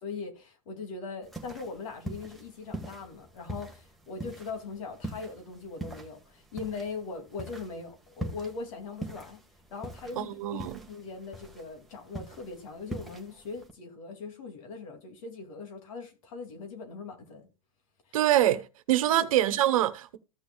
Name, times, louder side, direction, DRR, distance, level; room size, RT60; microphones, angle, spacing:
voice 1, 0.0-9.4 9.7-17.5 18.1-18.2 19.0-19.3, left 4 dB, 70° left, 2.7 m, -40 dB
sound 1, 1.2-13.7, right 1 dB, ahead, 1.5 m, -43 dB
voice 2, 10.2-10.8 18.1-20.2, right 13 dB, 75° right, 1.1 m, -25 dB
15.5 x 6.2 x 2.3 m
hypercardioid pair, 125°, 18 cm